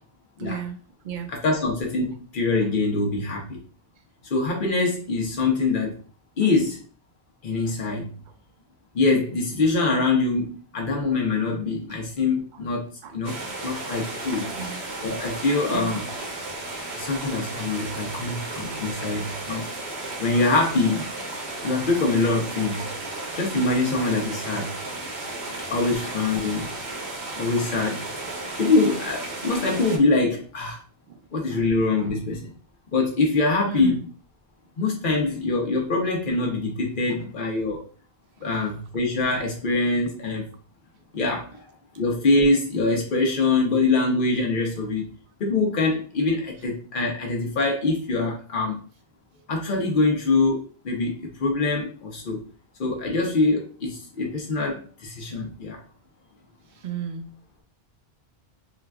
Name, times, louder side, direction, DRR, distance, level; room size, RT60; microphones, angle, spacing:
voice 1, 0.4-0.8 1.0-1.3 7.7-7.8 13.0-13.2 14.5-14.8 15.7-16.0 18.4-18.5 25.4-25.6 28.5-28.6 31.1-31.2 31.5-31.6 32.0-32.2 33.7-34.0 56.7-57.3, right 7 dB, 60° right, 7 dB, 0.6 m, -34 dB
voice 2, 1.3-3.6 4.3-5.9 6.4-6.8 7.4-8.1 8.9-13.4 13.6-14.5 15.0-16.1 17.0-19.7 20.2-21.1 21.6-22.9 23.3-24.7 25.7-26.7 27.4-28.0 28.6-30.8 31.3-32.5 32.9-34.0 34.8-37.8 38.4-40.5 41.1-41.6 42.0-45.1 45.4-48.8 49.5-50.6 50.8-52.4 52.8-55.8, left 3 dB, 55° left, 0 dB, 0.9 m, -24 dB
sound 1, 13.2-30.0, right 2 dB, 85° right, 1.1 m, -34 dB
3.8 x 2.4 x 2.3 m, 0.41 s
omnidirectional pair, 1.1 m